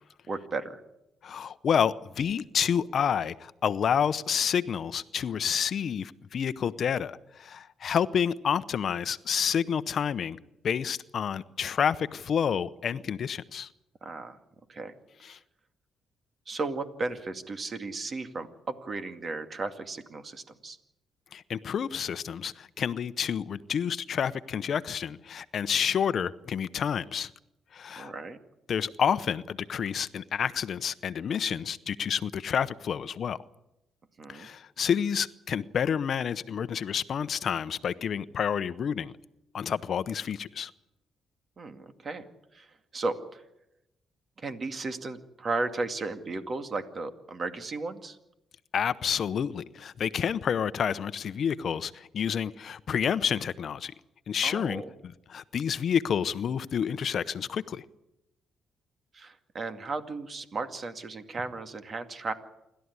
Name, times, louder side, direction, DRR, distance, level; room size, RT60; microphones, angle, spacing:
voice 1, 0.3-0.8 14.0-14.4 14.7-14.9 16.5-20.8 28.0-28.4 34.2-34.5 41.6-42.2 42.5-43.4 44.4-48.2 54.4-54.9 59.1-62.3, right 3 dB, 40° right, 8 dB, 2.3 m, -35 dB
voice 2, 1.2-10.4 10.6-13.7 15.2-15.4 21.3-27.3 27.7-28.1 28.7-33.4 34.3-39.1 39.5-40.7 48.7-53.9 54.3-57.8, left 7 dB, 55° left, 15 dB, 0.8 m, -29 dB
28.0 x 12.5 x 9.7 m, 0.91 s
cardioid pair, 90°, 0 cm